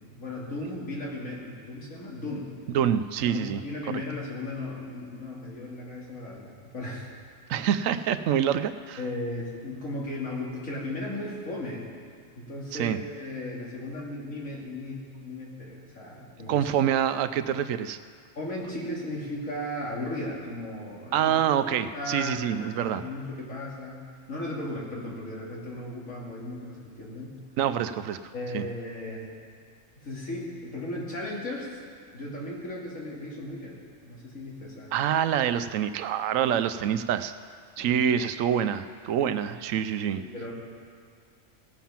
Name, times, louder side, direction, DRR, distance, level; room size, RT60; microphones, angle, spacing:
voice 1, 0.0-2.5 3.2-7.1 9.0-11.8 12.4-16.7 18.3-21.4 21.7-27.4 28.3-29.3 29.9-31.8 32.1-34.9 37.8-38.0 40.1-40.5, left 1 dB, 90° left, -5 dB, 3.0 m, -36 dB
voice 2, 2.7-3.6 3.9-4.0 7.5-9.0 12.7-13.0 16.5-18.0 21.1-23.0 27.6-28.2 28.5-28.7 34.9-37.3 37.8-40.2, right 9 dB, 80° right, 11 dB, 1.0 m, -26 dB
17.5 x 7.4 x 5.8 m, 2.2 s
omnidirectional pair, 1.3 m